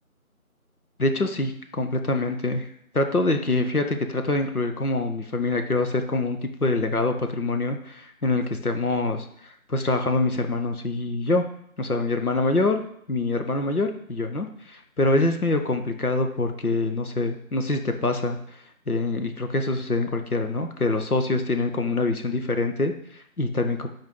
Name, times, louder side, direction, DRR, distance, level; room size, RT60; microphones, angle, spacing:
voice 1, 1.0-2.7 2.9-11.4 11.8-12.8 13.1-18.4 18.9-23.9, left 2 dB, 80° left, 5 dB, 1.1 m, -25 dB
7.8 x 4.6 x 3.8 m, 0.70 s
figure-of-eight pair, 175°, 44 cm